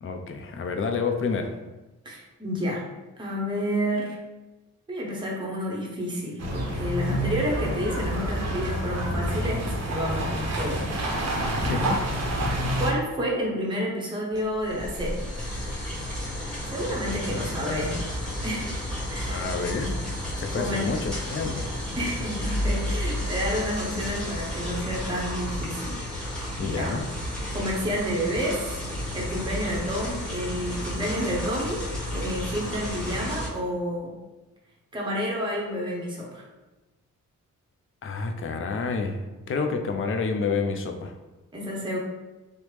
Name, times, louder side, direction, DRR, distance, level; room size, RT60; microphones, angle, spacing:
voice 1, 0.0-1.6 7.1-7.4 11.5-12.0 17.3-18.0 19.3-19.9 20.4-21.7 26.6-27.0 38.0-39.2 39.5-41.1, left 4 dB, 40° left, 5 dB, 0.4 m, -29 dB
voice 2, 2.0-2.9 3.2-4.2 4.9-10.8 11.2-12.0 12.5-15.3 16.7-18.0 18.4-19.4 20.5-20.9 22.0-25.9 26.6-27.0 27.5-28.7 29.1-31.9 32.1-34.1 34.9-36.4 41.5-42.0, equal, 15° right, -3 dB, 0.7 m, -30 dB
sound 1, 6.4-12.9, equal, 50° right, 0.6 m, -28 dB
sound 2, 14.3-33.5, left 1 dB, 5° left, 1.0 m, -32 dB
3.1 x 2.0 x 3.1 m, 1.1 s
cardioid pair, 95°, 32 cm